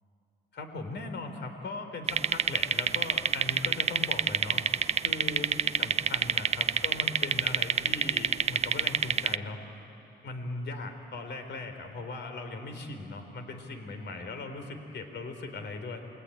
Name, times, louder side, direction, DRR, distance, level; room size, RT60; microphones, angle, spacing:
voice 1, 0.5-4.6 5.0-9.6 10.2-16.0, left 3 dB, 60° left, 6 dB, 3.8 m, -39 dB
sound 1, 2.1-9.4, right 6 dB, 35° right, 0.6 m, -27 dB
28.0 x 20.0 x 9.9 m, 2.9 s
cardioid pair, 90°, 20 cm